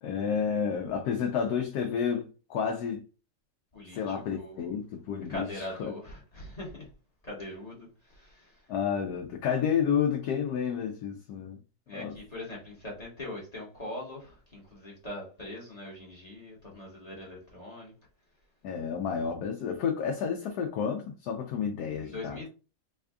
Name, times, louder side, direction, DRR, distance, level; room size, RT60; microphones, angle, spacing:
voice 1, 0.0-3.0 3.9-5.9 8.7-11.6 11.9-12.1 18.6-22.4, left 7 dB, 70° left, 1.0 m, -30 dB
voice 2, 3.7-4.8 5.3-6.9 7.2-8.6 11.9-17.9 22.0-22.5, left 1 dB, 25° left, 0.9 m, -42 dB
3.5 x 2.2 x 3.4 m
omnidirectional pair, 1.9 m